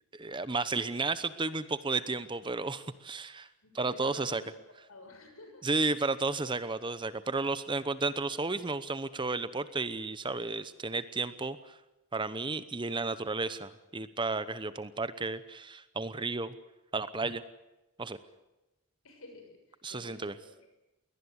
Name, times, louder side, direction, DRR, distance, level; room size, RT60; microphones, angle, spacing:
voice 1, 0.1-3.5 3.7-4.4 5.6-11.8 12.1-16.5 16.9-17.4 18.0-18.2 19.8-20.3, right 3 dB, 20° right, 14 dB, 0.8 m, -33 dB
voice 2, 3.6-4.5 4.9-5.7 19.0-20.7, left 2 dB, 75° left, 4 dB, 6.8 m, -50 dB
22.0 x 18.5 x 9.6 m, 1.0 s
head